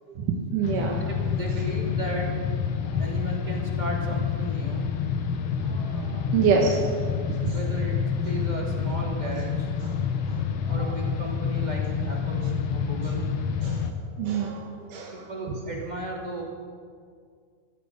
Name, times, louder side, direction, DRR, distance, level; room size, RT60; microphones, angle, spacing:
voice 1, 0.2-1.0 5.6-6.8 7.5-7.6 10.6-10.7 13.6-13.8 14.2-14.6 14.9-15.2, right 6 dB, 85° right, 0 dB, 2.8 m, -26 dB
sound 1, 0.6-13.9, left 6 dB, 65° left, 1.4 m, -28 dB
voice 2, 1.0-2.5 3.0-4.9 7.4-9.7 10.7-12.4 12.7-13.2 15.1-16.4, right 1 dB, 15° right, -2 dB, 2.4 m, -35 dB
14.5 x 13.5 x 6.8 m, 2.1 s
omnidirectional pair, 3.6 m